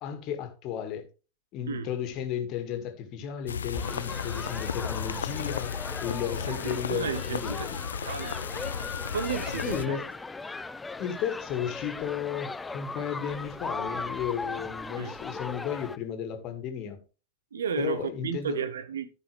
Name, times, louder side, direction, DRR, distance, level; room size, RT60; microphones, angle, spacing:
voice 1, 0.0-1.0 1.5-7.8 9.6-10.1 11.0-17.0 17.8-18.6, left 9 dB, 40° left, 1.9 m, -34 dB
sound 1, 3.5-9.9, left 7 dB, 70° left, 0.3 m, -34 dB
sound 2, 3.7-16.0, left 3 dB, 10° left, 0.5 m, -38 dB
voice 2, 6.5-7.7 8.0-8.4 9.1-10.0 15.0-15.1 17.5-19.1, right 6 dB, 65° right, 0.8 m, -33 dB
14.0 x 5.4 x 3.2 m
figure-of-eight pair, 90°, 0 cm